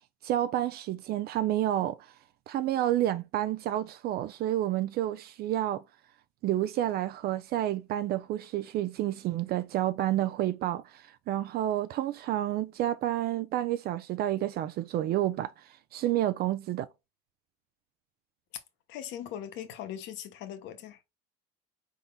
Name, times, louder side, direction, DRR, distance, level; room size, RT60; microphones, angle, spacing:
voice 1, 0.2-2.0 2.5-5.8 6.4-16.9, right 13 dB, 50° right, 0.4 m, -30 dB
voice 2, 18.9-21.0, left 10 dB, 65° left, 1.0 m, -40 dB
4.2 x 3.7 x 2.2 m
supercardioid pair, 100°, 21 cm